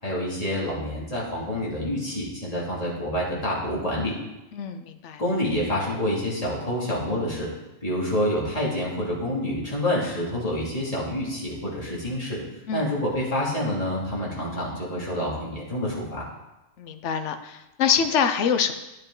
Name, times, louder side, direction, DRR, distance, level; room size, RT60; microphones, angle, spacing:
voice 1, 0.0-4.1 5.2-7.5 7.8-12.4 12.7-16.2, left 1 dB, 30° left, -5 dB, 2.7 m, -27 dB
voice 2, 4.5-5.2 12.7-12.9 16.8-18.7, left 7 dB, 70° left, 8 dB, 1.1 m, -25 dB
10.5 x 9.4 x 3.8 m, 1.0 s
omnidirectional pair, 1.3 m